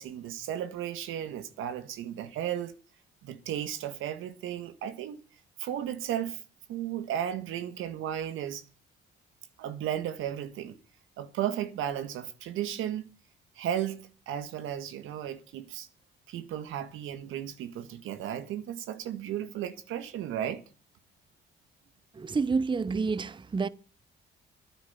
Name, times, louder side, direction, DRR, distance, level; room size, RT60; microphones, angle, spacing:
voice 1, 0.0-2.8 3.2-5.2 5.6-6.4 6.7-8.6 9.6-10.8 11.2-13.1 13.5-15.9 16.3-20.6, right 10 dB, 90° right, 1.7 m, -34 dB
voice 2, 22.2-23.7, right 4 dB, 25° right, 0.7 m, -28 dB
13.0 x 9.7 x 8.2 m
cardioid pair, 90°, 20 cm